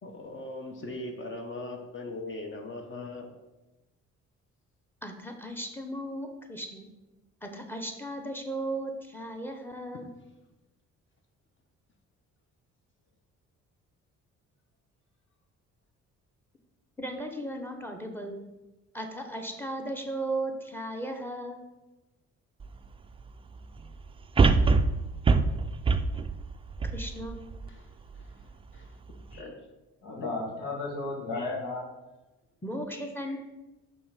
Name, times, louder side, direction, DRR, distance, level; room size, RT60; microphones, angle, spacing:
voice 1, 0.0-3.3 27.7-29.0 29.3-29.5 30.1-30.3, left 2 dB, 40° left, 3 dB, 1.0 m, -40 dB
voice 2, 5.0-6.9 7.4-10.1 17.0-18.4 18.9-21.6 26.9-27.4 32.6-33.4, right 1 dB, 5° left, 4 dB, 0.9 m, -36 dB
sound 1, 22.6-22.7 24.4-27.7 28.2-28.3, right 4 dB, 20° right, 0.3 m, -23 dB
voice 3, 30.0-31.8 32.9-33.3, left 3 dB, 90° left, -3 dB, 2.0 m, -35 dB
5.6 x 3.7 x 5.7 m, 1.0 s
cardioid pair, 90°, 30 cm